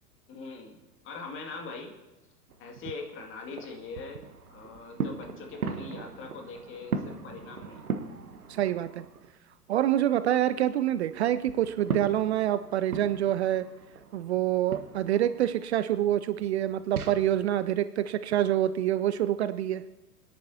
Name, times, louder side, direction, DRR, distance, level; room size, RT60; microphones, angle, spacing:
voice 1, 0.3-2.0 2.6-4.2 4.5-7.8, left 4 dB, 25° left, 2 dB, 2.2 m, -42 dB
sound 1, 2.5-9.3 9.7-17.2, right 5 dB, 70° right, 1.4 m, -39 dB
voice 2, 8.5-9.0 9.7-13.7 14.1-19.8, right 12 dB, 45° right, 13 dB, 0.5 m, -26 dB
29.5 x 10.5 x 2.8 m, 1.1 s
figure-of-eight pair, 95°, 46 cm